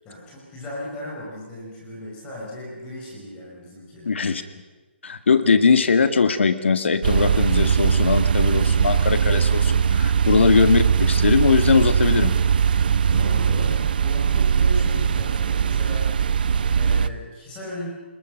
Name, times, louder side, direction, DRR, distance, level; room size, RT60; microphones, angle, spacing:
voice 1, 0.0-4.1 10.3-10.5 12.8-16.1 16.7-17.9, left 1 dB, 15° left, -3 dB, 5.5 m, -37 dB
voice 2, 4.0-4.4 5.0-12.3, left 5 dB, 80° left, 9 dB, 1.9 m, -20 dB
sound 1, 7.0-17.1, right 7 dB, 50° right, 0.7 m, -20 dB
27.0 x 21.0 x 6.5 m, 1.2 s
hypercardioid pair, 170°, 6 cm